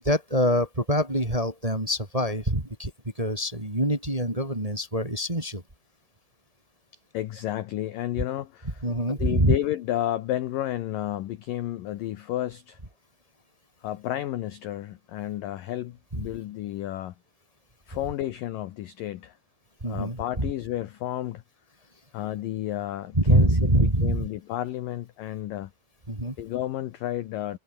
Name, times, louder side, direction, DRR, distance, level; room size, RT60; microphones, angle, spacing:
voice 1, 0.0-5.6 8.8-9.6 16.1-16.3 19.8-20.5 23.1-24.3 26.1-26.4, right 1 dB, 10° right, 2.1 m, -25 dB
voice 2, 7.1-8.8 9.1-12.8 13.8-17.1 17.9-19.4 19.9-21.4 22.1-25.7 26.4-27.6, left 13 dB, 75° left, 2.1 m, -31 dB
omnidirectional pair, 5.2 m